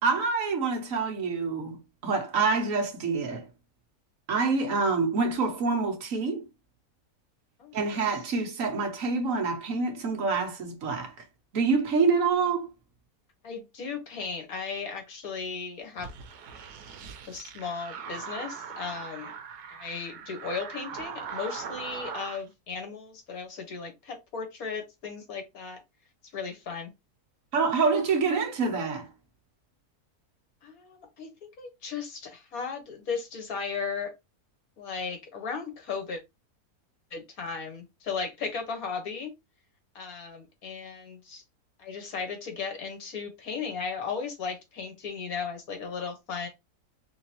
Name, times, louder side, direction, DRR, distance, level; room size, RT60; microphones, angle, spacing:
voice 1, 0.0-1.8 2.0-3.5 4.3-6.4 7.7-11.1 11.5-12.7 27.5-29.1, right 4 dB, 60° right, 1.4 m, -26 dB
voice 2, 7.6-8.0 13.4-16.1 17.3-19.3 19.7-25.8 26.3-26.9 30.6-34.1 34.8-36.2 37.1-39.3 39.9-41.4 41.8-46.5, left 5 dB, 65° left, 1.7 m, -36 dB
sound 1, 16.0-22.4, right 6 dB, 90° right, 1.3 m, -40 dB
3.9 x 3.6 x 2.8 m
omnidirectional pair, 1.6 m